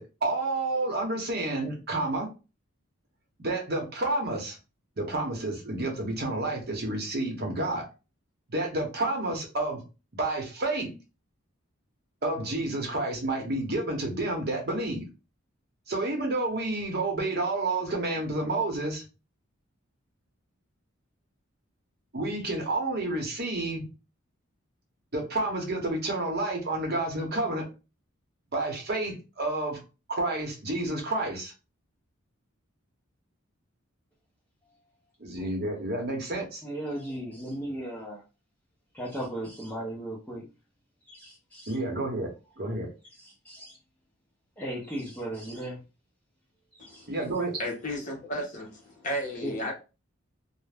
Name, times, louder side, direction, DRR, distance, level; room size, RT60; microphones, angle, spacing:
voice 1, 0.0-2.3 3.4-4.6 5.0-7.8 8.5-9.8 10.1-10.9 12.2-15.0 15.9-19.0 22.1-23.9 25.1-27.7 28.5-29.8 30.1-31.5 35.2-36.6 41.7-42.3 42.6-42.9 47.1-47.6, right 2 dB, 45° right, 0.8 m, -30 dB
voice 2, 36.6-38.2 38.9-40.4 41.1-41.8 43.2-43.8 44.6-45.8 46.7-47.1 49.3-49.7, right 1 dB, 5° left, 0.5 m, -37 dB
voice 3, 47.6-49.7, equal, 35° left, 0.8 m, -33 dB
2.5 x 2.1 x 3.3 m
head